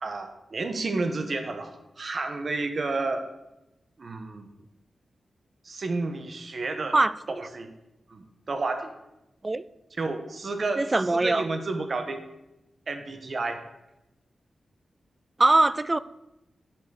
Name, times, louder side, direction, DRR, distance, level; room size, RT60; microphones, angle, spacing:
voice 1, 0.0-3.2 4.0-4.5 5.6-7.0 7.3-7.7 8.1-8.9 10.0-12.2 12.9-13.6, right 3 dB, 60° right, 7 dB, 1.3 m, -31 dB
voice 2, 10.8-11.5 15.4-16.0, right 2 dB, 30° right, 17 dB, 0.5 m, -21 dB
10.5 x 5.4 x 6.5 m, 0.94 s
cardioid pair, 50°, 0 cm